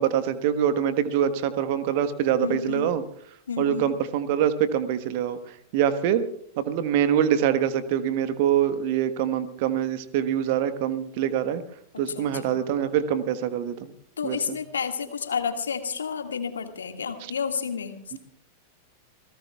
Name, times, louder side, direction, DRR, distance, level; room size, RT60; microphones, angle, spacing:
voice 1, 0.0-3.0 3.6-6.2 6.6-11.6 12.0-13.9 14.2-14.6, right 9 dB, 50° right, 12 dB, 1.3 m, -24 dB
voice 2, 2.4-2.9 3.5-3.9 11.9-12.7 14.2-18.2, left 6 dB, 70° left, 6 dB, 1.9 m, -31 dB
27.5 x 18.5 x 2.4 m, 0.66 s
figure-of-eight pair, 90°, 0 cm